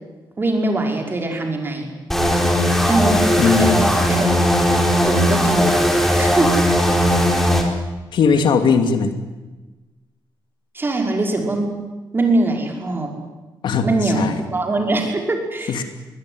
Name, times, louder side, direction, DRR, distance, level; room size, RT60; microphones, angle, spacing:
voice 1, 0.4-1.9 2.9-3.2 3.5-4.4 5.0-5.8 6.2-6.5 10.7-11.7 12.1-13.1 13.8-14.2 14.5-15.8, right 2 dB, 25° right, 3 dB, 5.3 m, -22 dB
sound 1, 2.1-7.6, equal, 5° left, 4.5 m, -17 dB
voice 2, 3.4-3.8 8.1-9.1 13.6-14.4 15.7-15.8, left 5 dB, 75° left, 8 dB, 2.6 m, -18 dB
22.5 x 19.5 x 9.8 m, 1.2 s
cardioid pair, 120°, 8 cm